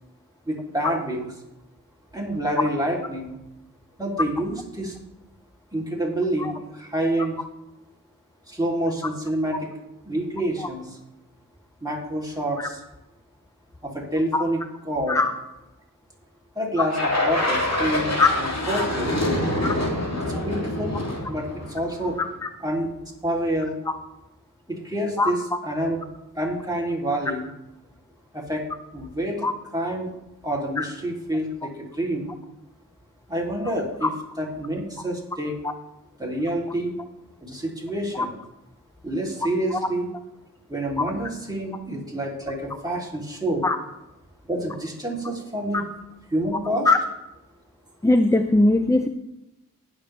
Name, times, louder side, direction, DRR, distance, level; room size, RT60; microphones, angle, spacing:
voice 1, 0.4-1.3 2.1-3.4 4.0-4.9 5.7-7.4 8.5-9.7 10.0-11.0 11.8-12.8 13.8-14.6 14.8-15.2 16.5-19.2 20.3-22.2 22.6-22.9 23.2-23.8 24.7-26.0 26.3-27.5 28.3-28.6 28.9-30.1 30.4-32.3 33.3-34.1 34.4-35.6 36.2-36.9 37.4-38.3 39.0-40.1 40.7-43.6 44.5-45.9 46.3-46.9, right 1 dB, 10° right, -3 dB, 3.3 m, -27 dB
sound 1, 16.9-22.2, left 1 dB, 50° left, 3.0 m, -26 dB
voice 2, 48.0-49.1, left 2 dB, 10° left, 8 dB, 0.5 m, -20 dB
19.0 x 7.2 x 3.4 m, 0.96 s
wide cardioid pair, 80°, 34 cm